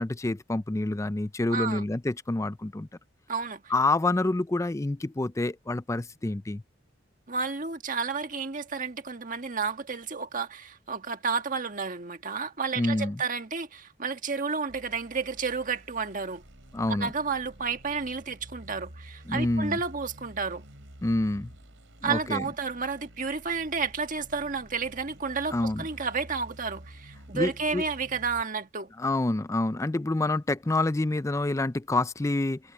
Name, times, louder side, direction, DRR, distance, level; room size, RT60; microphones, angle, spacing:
voice 1, 0.0-2.9 3.7-6.6 12.8-13.2 16.7-17.1 19.3-19.8 21.0-21.5 22.0-22.4 25.5-25.8 27.3-27.8 29.0-32.6, left 2 dB, 15° left, 0.4 m, -27 dB
voice 2, 1.5-1.9 3.3-3.7 7.3-16.4 16.9-20.6 22.0-28.9, right 5 dB, 45° right, 1.6 m, -31 dB
sound 1, 14.7-28.4, right 1 dB, 80° right, 3.6 m, -49 dB
head